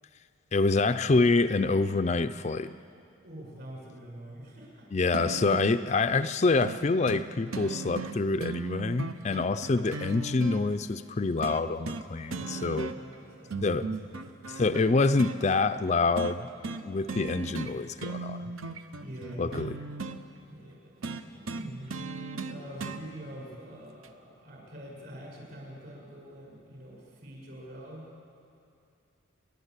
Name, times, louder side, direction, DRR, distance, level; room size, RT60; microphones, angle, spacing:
voice 1, 0.5-2.7 4.9-12.9 13.6-13.9 14.6-16.5 16.8-18.5 19.4-19.8, left 3 dB, 30° left, 10 dB, 0.4 m, -26 dB
voice 2, 3.2-4.8 5.6-5.9 12.3-14.2 19.0-19.5 20.5-20.9 21.2-21.9 22.5-28.0, right 1 dB, 50° right, -3 dB, 7.3 m, -45 dB
sound 1, 5.1-5.8 6.6-6.8 7.1-7.2 7.5-10.6 11.4-12.0 12.3-13.1 13.5-15.4 16.2-16.4 16.6-16.8 17.1-17.7 18.0-20.2 21.0-23.0 24.0-24.1, right 3 dB, 80° right, 1.0 m, -37 dB
29.5 x 12.0 x 8.2 m, 2.5 s
head